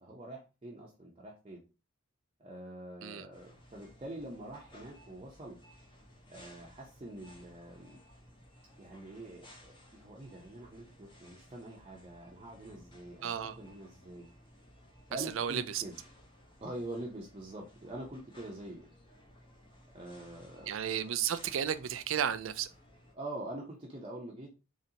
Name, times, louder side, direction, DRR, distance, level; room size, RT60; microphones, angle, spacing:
voice 1, 0.0-1.6 2.4-5.6 6.3-8.0 8.8-14.3 15.1-16.0 16.6-18.9 19.9-20.7 23.1-24.5, right 1 dB, 30° right, 0.7 m, -45 dB
sound 1, 3.3-23.1, equal, 25° left, 1.0 m, -58 dB
voice 2, 13.2-13.6 15.1-15.8 20.7-22.7, right 9 dB, 70° right, 0.4 m, -33 dB
3.9 x 3.2 x 2.8 m
head